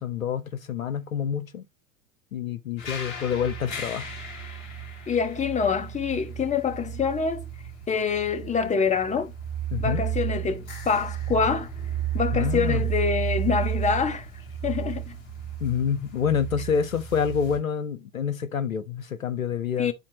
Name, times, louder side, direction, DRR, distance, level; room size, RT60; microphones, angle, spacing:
voice 1, 0.0-1.7 2.3-4.1 9.7-10.0 12.3-12.8 15.6-19.9, left 7 dB, 85° left, 0.9 m, -27 dB
sound 1, 2.8-17.6, right 9 dB, 55° left, 4.0 m, -33 dB
voice 2, 5.1-7.4 7.9-9.3 9.8-11.7 12.1-14.3 14.6-15.2 19.8-19.9, left 6 dB, 15° left, 1.2 m, -26 dB
10.5 x 4.2 x 2.9 m
hypercardioid pair, 90°, 40 cm